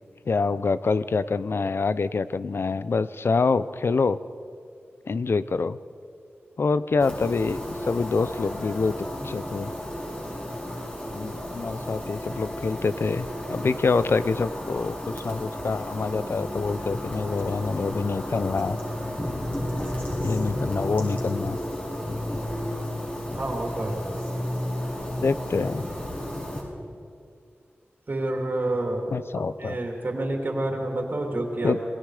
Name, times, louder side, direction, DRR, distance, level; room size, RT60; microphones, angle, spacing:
voice 1, 0.3-4.2 5.1-5.8 6.6-9.7 11.1-18.8 20.2-21.6 25.2-25.9 29.1-29.8 31.6-31.8, left 4 dB, 65° left, 15 dB, 0.7 m, -26 dB
sound 1, 7.0-26.6, left 1 dB, 30° left, 6.6 m, -33 dB
voice 2, 23.3-24.3 28.1-29.1 29.6-32.0, right 1 dB, 50° right, 1 dB, 3.1 m, -28 dB
27.0 x 19.5 x 5.0 m, 2.4 s
wide cardioid pair, 65°, 4 cm